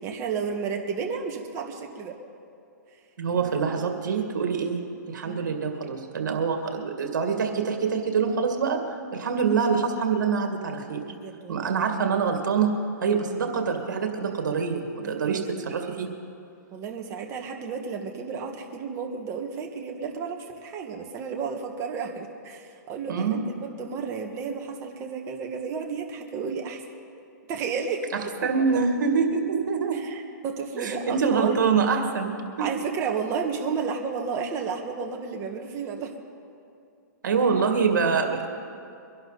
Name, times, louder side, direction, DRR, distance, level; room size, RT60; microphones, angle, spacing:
voice 1, 0.0-2.2 3.3-3.8 5.3-5.6 11.1-11.7 15.0-15.5 16.7-26.8 27.5-28.1 29.9-31.6 32.6-36.1, right 5 dB, 30° right, 2 dB, 1.7 m, -32 dB
voice 2, 3.2-11.0 11.5-12.7 13.0-16.1 23.1-23.4 28.4-30.1 30.8-32.7 37.2-38.5, right 5 dB, 75° right, 3 dB, 2.3 m, -25 dB
23.5 x 11.5 x 4.1 m, 2.5 s
hypercardioid pair, 140°, 10 cm